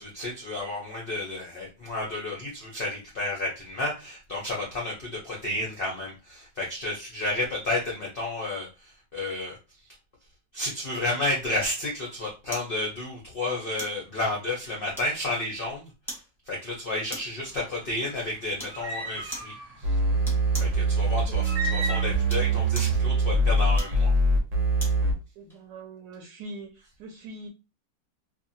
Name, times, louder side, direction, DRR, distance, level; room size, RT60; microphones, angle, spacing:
voice 1, 0.0-9.6 10.5-15.9 16.5-19.5 20.7-24.1, left 2 dB, 50° left, -3 dB, 0.6 m, -31 dB
sound 1, 12.5-12.8 13.8-14.0 14.9-15.4 16.1-16.3 17.1-17.4 18.6-18.8 19.3-19.6 20.2-20.8 22.1-23.0 23.7-25.0 25.5-25.6, equal, ahead, 0.7 m, -40 dB
sound 2, 17.5-22.9, right 1 dB, 35° right, 0.6 m, -35 dB
sound 3, 19.8-25.1, right 2 dB, 55° right, 0.9 m, -23 dB
voice 2, 25.4-27.5, right 2 dB, 80° right, 2 dB, 1.2 m, -42 dB
2.7 x 2.7 x 2.6 m, 0.29 s
omnidirectional pair, 1.9 m